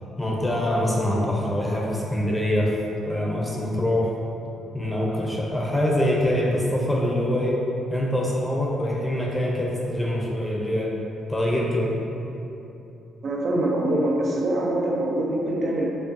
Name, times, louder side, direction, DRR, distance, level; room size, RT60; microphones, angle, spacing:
voice 1, 0.2-2.7 3.1-4.1 4.7-7.6 7.9-10.9 11.3-12.0, left 1 dB, 10° left, -3 dB, 0.6 m, -24 dB
voice 2, 13.2-15.8, right 1 dB, 60° right, -2 dB, 0.5 m, -24 dB
5.1 x 2.3 x 2.6 m, 2.9 s
cardioid pair, 90°, 0 cm